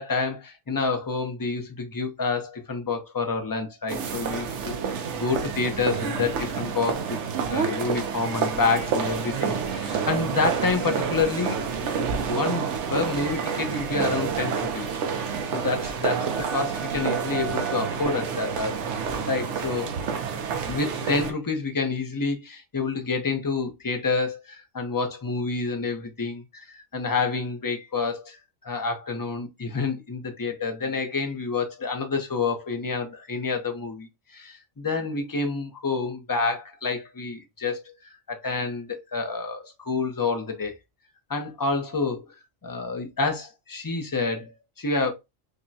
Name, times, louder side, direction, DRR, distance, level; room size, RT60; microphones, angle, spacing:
voice 1, 0.0-4.8 5.1-7.2 7.5-11.6 12.3-15.0 15.5-19.9 20.7-37.9 38.3-40.7 41.3-42.2 42.6-45.1, left 4 dB, 25° left, 0.4 m, -28 dB
sound 1, 3.9-21.3, right 6 dB, 65° right, 0.9 m, -28 dB
5.1 x 2.2 x 2.7 m
omnidirectional pair, 1.4 m